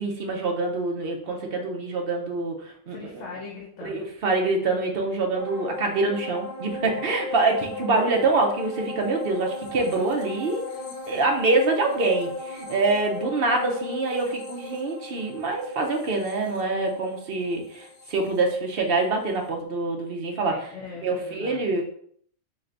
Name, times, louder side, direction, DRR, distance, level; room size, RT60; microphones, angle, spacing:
voice 1, 0.0-3.0 3.8-10.6 11.1-20.7 21.0-21.8, right 3 dB, 55° right, 2 dB, 0.8 m, -25 dB
voice 2, 2.9-4.1 10.7-10.9 20.4-21.7, left 4 dB, 70° left, -2 dB, 1.2 m, -41 dB
sound 1, 5.4-19.1 19.4-19.5, left 2 dB, 50° left, 0.6 m, -37 dB
3.3 x 3.3 x 3.8 m, 0.62 s
omnidirectional pair, 1.4 m